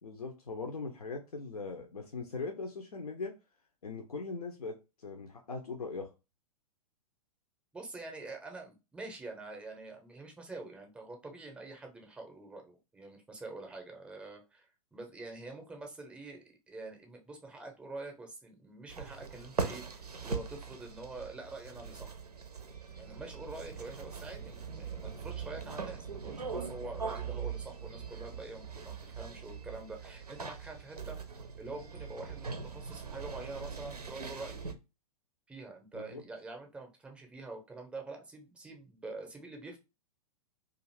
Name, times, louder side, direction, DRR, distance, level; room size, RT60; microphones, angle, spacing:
voice 1, 0.0-3.3 3.8-6.1 35.9-36.2, left 4 dB, 75° left, 0.5 m, -40 dB
voice 2, 7.7-16.4 16.7-22.1 22.9-31.2 31.6-34.6 35.5-39.8, right 3 dB, 5° right, 0.6 m, -46 dB
sound 1, 18.9-34.7, right 5 dB, 85° right, 0.5 m, -41 dB
2.4 x 2.4 x 3.0 m
figure-of-eight pair, 105°, 19 cm